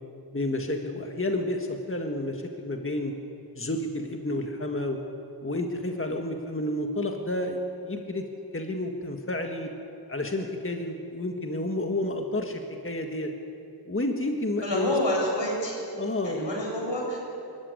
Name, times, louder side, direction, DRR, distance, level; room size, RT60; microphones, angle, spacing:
voice 1, 0.3-3.1 3.5-5.0 5.4-8.2 8.5-9.7 10.1-13.3 13.8-14.9 16.0-16.5, left 1 dB, 30° left, 3 dB, 1.7 m, -30 dB
voice 2, 14.6-15.8 16.2-17.2, left 1 dB, 85° left, -2 dB, 7.5 m, -28 dB
25.5 x 14.5 x 9.8 m, 2.8 s
wide cardioid pair, 75°, 43 cm